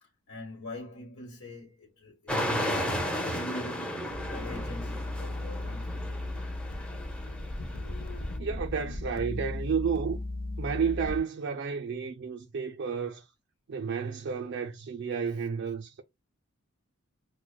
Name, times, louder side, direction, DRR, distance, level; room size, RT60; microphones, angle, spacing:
voice 1, 0.0-2.8 3.3-6.1, left 1 dB, 70° left, 1.3 m, -43 dB
sound 1, 2.3-8.4, equal, 5° left, 0.6 m, -34 dB
sound 2, 4.1-11.2, left 2 dB, 45° left, 0.6 m, -36 dB
voice 2, 8.4-10.2 10.6-13.3 13.7-16.0, right 6 dB, 55° right, 0.4 m, -31 dB
6.1 x 2.1 x 2.2 m
head